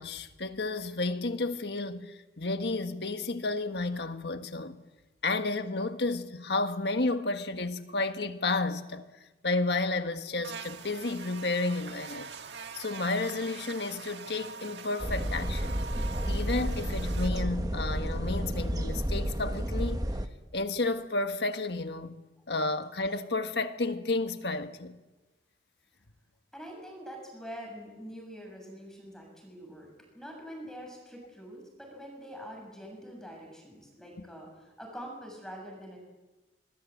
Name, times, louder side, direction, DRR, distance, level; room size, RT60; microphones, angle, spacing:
voice 1, 0.0-4.8 5.2-9.0 9.4-12.3 12.7-15.8 16.3-20.1 20.5-22.2 22.5-25.0, left 3 dB, 70° left, 1.6 m, -31 dB
Buzz, 10.4-17.3, right 6 dB, 85° right, 1.6 m, -44 dB
sound 1, 15.0-20.3, equal, 20° right, 1.3 m, -31 dB
voice 2, 26.5-29.9 30.1-36.0, equal, 5° left, 7.2 m, -45 dB
26.0 x 21.5 x 8.5 m
head